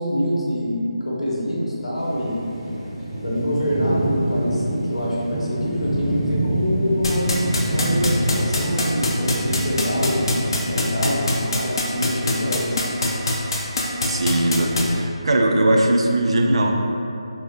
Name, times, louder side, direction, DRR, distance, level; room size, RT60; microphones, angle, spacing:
voice 1, 0.0-2.4 3.2-10.3 10.6-12.8, equal, 85° left, -5 dB, 0.8 m, -25 dB
sound 1, 1.9-11.3, right 1 dB, ahead, 0.7 m, -26 dB
sound 2, 7.0-14.8, left 2 dB, 50° left, 0.4 m, -22 dB
voice 2, 14.0-16.7, right 1 dB, 65° right, 2 dB, 0.3 m, -19 dB
3.5 x 2.1 x 2.6 m, 2.7 s
figure-of-eight pair, 160°, 3 cm